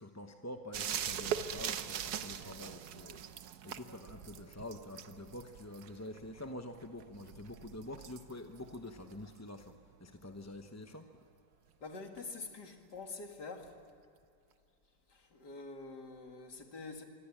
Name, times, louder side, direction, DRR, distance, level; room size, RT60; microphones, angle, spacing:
voice 1, 0.0-11.1, left 1 dB, 15° left, 5 dB, 0.7 m, -47 dB
sound 1, 0.7-10.1 12.2-12.3, right 9 dB, 65° right, 1.4 m, -42 dB
voice 2, 11.8-13.7 15.1-17.0, left 3 dB, 75° left, 4 dB, 3.0 m, -46 dB
25.5 x 24.5 x 8.6 m, 2.4 s
omnidirectional pair, 1.8 m